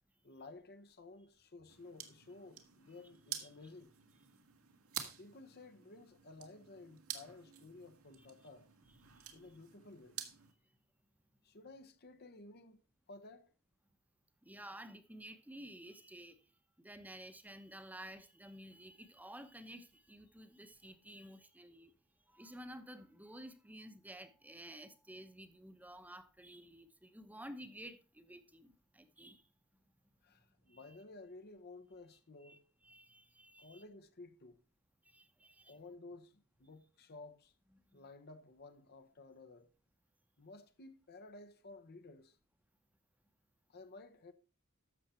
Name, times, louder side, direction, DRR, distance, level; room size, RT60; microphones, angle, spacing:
voice 1, 0.2-3.9 5.2-8.7 9.3-10.2 11.4-12.8 13.1-13.5 30.2-32.6 33.6-34.6 35.7-37.5 37.9-39.7 40.4-42.4 43.7-44.3, left 3 dB, 50° left, 0.9 m, -54 dB
sound 1, 1.7-10.5, right 10 dB, 80° right, 1.8 m, -50 dB
voice 2, 9.1-9.5 14.4-16.5 16.8-21.9 22.3-29.5 30.7-31.0 32.4-33.8 35.0-35.8 37.9-38.0, right 1 dB, 10° right, 0.9 m, -53 dB
12.5 x 7.2 x 4.3 m
head